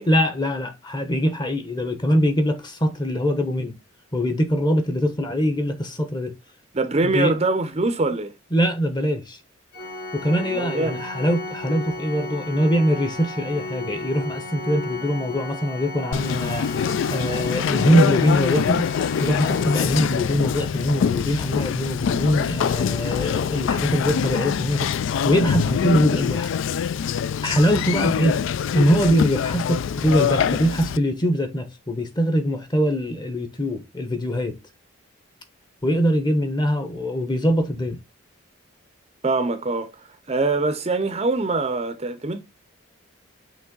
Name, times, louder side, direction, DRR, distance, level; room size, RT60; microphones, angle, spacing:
voice 1, 0.1-3.8 4.1-6.3 7.0-7.3 8.5-9.4 10.1-16.7 17.1-18.9 19.2-24.9 25.2-26.5 27.4-28.4 28.7-34.6 35.8-38.0, equal, 20° left, 0.9 m, -22 dB
voice 2, 6.7-8.3 10.3-11.0 39.2-39.9 40.3-42.4, right 3 dB, 30° right, 0.5 m, -23 dB
Organ, 9.7-20.6, left 2 dB, 45° left, 3.2 m, -34 dB
Conversation, 16.1-31.0, left 7 dB, 65° left, 0.3 m, -24 dB
6.0 x 3.1 x 5.2 m
head